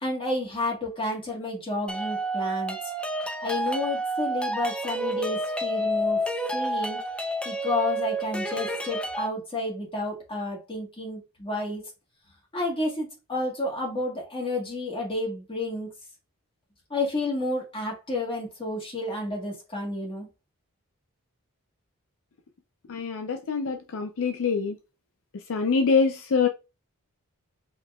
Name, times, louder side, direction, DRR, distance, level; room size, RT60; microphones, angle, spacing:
voice 1, 0.0-2.8 3.4-6.2 6.5-7.0 7.4-11.8 12.5-15.9 16.9-20.3, left 2 dB, 25° left, 1.7 m, -30 dB
sound 1, 1.9-9.3, right 1 dB, 5° left, 0.4 m, -29 dB
voice 2, 22.9-24.7 25.5-26.5, left 5 dB, 65° left, 0.5 m, -24 dB
5.1 x 2.8 x 2.3 m
head